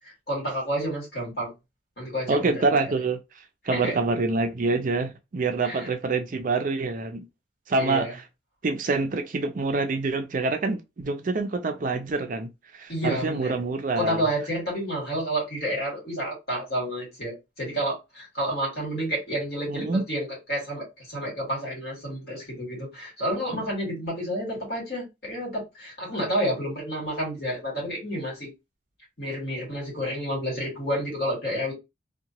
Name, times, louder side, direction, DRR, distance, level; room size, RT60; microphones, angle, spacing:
voice 1, 0.3-1.5 2.0-2.7 3.7-4.0 5.6-5.9 7.8-8.1 12.9-13.6 14.0-28.5 29.2-31.7, equal, 55° left, 1.8 m, -30 dB
voice 2, 2.3-3.2 3.7-7.3 7.7-8.1 8.6-14.2 19.7-20.0 23.5-23.6, right 3 dB, 45° right, 0.4 m, -26 dB
2.8 x 2.2 x 2.8 m
head